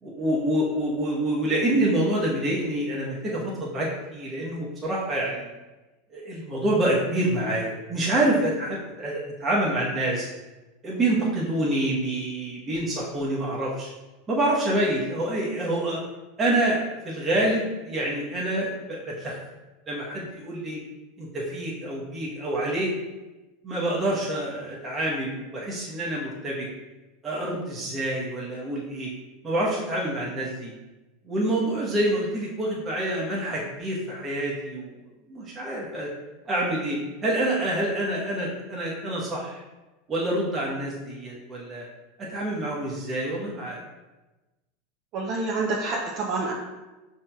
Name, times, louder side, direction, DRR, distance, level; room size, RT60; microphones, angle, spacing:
voice 1, 0.0-5.5 6.1-10.3 10.8-13.9 14.3-16.0 16.4-16.8 17.0-19.4 19.9-20.8 21.2-22.9 23.6-26.7 27.2-29.1 29.4-30.7 31.2-34.9 35.3-36.1 36.4-39.6 40.1-41.8 42.3-43.8, right 1 dB, 30° right, -5 dB, 1.0 m, -27 dB
voice 2, 45.1-46.5, right 3 dB, 50° right, -3 dB, 0.5 m, -27 dB
5.5 x 2.8 x 2.3 m, 1.1 s
hypercardioid pair, 90°, 0 cm